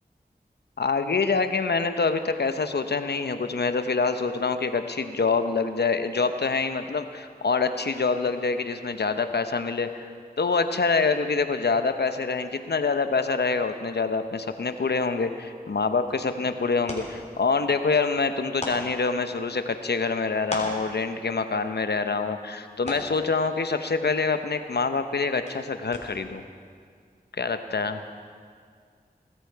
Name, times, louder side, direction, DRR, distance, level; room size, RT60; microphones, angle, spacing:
voice 1, 0.8-10.1 10.4-26.4 27.4-28.0, left 4 dB, 90° left, 9 dB, 0.8 m, -26 dB
sound 1, 15.7-26.4, left 1 dB, 40° left, 3.5 m, -42 dB
21.0 x 13.5 x 4.6 m, 2.1 s
wide cardioid pair, 45°, 17 cm